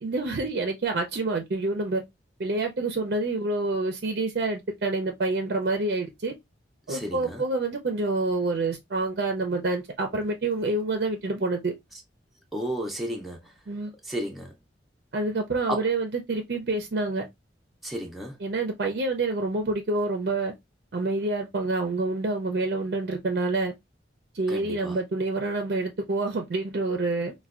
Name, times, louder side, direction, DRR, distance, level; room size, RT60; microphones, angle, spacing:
voice 1, 0.0-2.0 2.4-6.3 6.9-11.7 13.7-13.9 15.1-17.3 18.4-20.5 20.9-23.7 24.3-27.3, right 2 dB, 55° right, 0.4 m, -27 dB
voice 2, 6.9-7.4 12.5-13.5 14.0-14.5 15.7-15.8 17.8-18.4 24.5-25.0, equal, ahead, 0.5 m, -33 dB
4.3 x 2.2 x 2.3 m
head